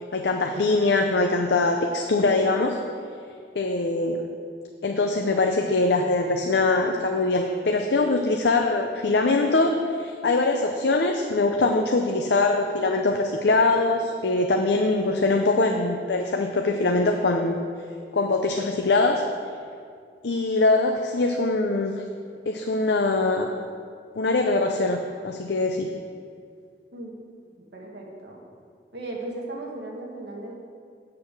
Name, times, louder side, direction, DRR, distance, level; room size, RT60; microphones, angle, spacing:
voice 1, 0.1-2.8 3.6-4.2 4.8-9.7 10.0-17.6 18.1-19.2 20.2-22.1 22.5-23.5 24.2-25.9, left 3 dB, 70° left, 3 dB, 0.6 m, -22 dB
voice 2, 27.6-28.4 28.9-30.5, right 2 dB, 70° right, -2 dB, 1.8 m, -36 dB
8.5 x 6.7 x 6.0 m, 2.2 s
head